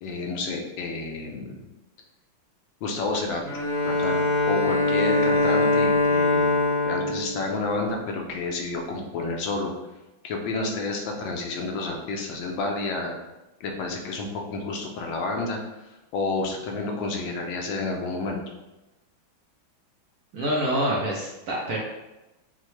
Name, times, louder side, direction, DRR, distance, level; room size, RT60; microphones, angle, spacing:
voice 1, 0.0-1.6 2.8-3.4 3.8-4.2 4.5-6.5 6.8-9.7 10.2-13.1 13.6-15.6 16.1-18.4, left 3 dB, 80° left, 1 dB, 1.4 m, -30 dB
Bowed string instrument, 3.4-8.3, left 2 dB, 55° left, 1.9 m, -23 dB
voice 2, 20.3-21.8, right 1 dB, 70° right, -3 dB, 0.9 m, -26 dB
6.0 x 2.2 x 3.1 m, 1.0 s
omnidirectional pair, 2.2 m